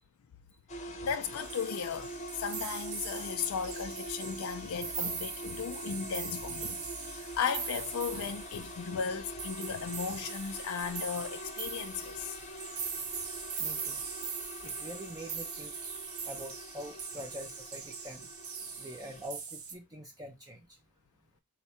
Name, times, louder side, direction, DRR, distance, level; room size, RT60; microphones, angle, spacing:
sound 1, 0.7-19.3, equal, 30° left, 0.7 m, -45 dB
voice 1, 1.0-12.4, left 6 dB, 70° left, 0.4 m, -36 dB
sound 2, 1.4-19.7, right 6 dB, 70° right, 0.8 m, -41 dB
voice 2, 13.6-14.0 14.6-15.8 16.2-18.3 18.8-20.8, equal, 15° right, 0.5 m, -45 dB
4.5 x 2.1 x 4.1 m
head